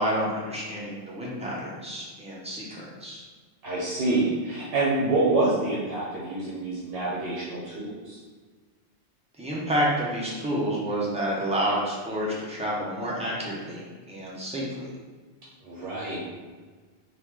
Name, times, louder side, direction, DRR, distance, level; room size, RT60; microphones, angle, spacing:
voice 1, 0.0-3.2 9.4-14.9, equal, 10° right, -6 dB, 0.5 m, -29 dB
voice 2, 3.6-8.2 15.6-16.2, right 2 dB, 60° right, -6 dB, 0.8 m, -27 dB
3.0 x 2.2 x 3.5 m, 1.4 s
omnidirectional pair, 1.2 m